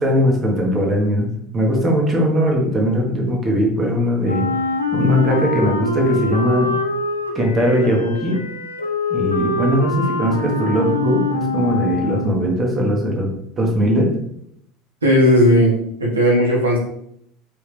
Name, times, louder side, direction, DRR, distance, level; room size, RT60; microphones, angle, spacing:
voice 1, 0.0-1.3 1.5-4.5 4.9-6.7 7.3-8.4 9.1-14.1, equal, 30° right, 0 dB, 1.3 m, -19 dB
Wind instrument woodwind instrument, 4.2-12.5, left 2 dB, 85° left, 0.4 m, -24 dB
voice 2, 15.0-15.7 16.0-16.8, equal, 80° right, -4 dB, 1.4 m, -15 dB
4.5 x 3.5 x 3.2 m, 0.73 s
figure-of-eight pair, 70°, 0 cm